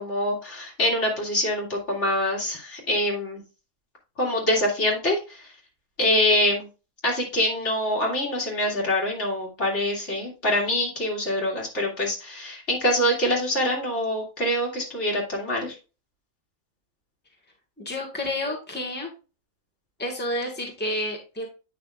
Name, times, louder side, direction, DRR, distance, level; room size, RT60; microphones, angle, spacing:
voice 1, 0.0-3.4 4.2-5.5 6.0-6.7 7.0-15.8, left 1 dB, 60° left, -3 dB, 2.7 m, -25 dB
voice 2, 17.8-19.1 20.0-21.5, left 1 dB, 10° left, 0 dB, 1.6 m, -30 dB
8.9 x 5.8 x 2.4 m, 0.32 s
omnidirectional pair, 1.3 m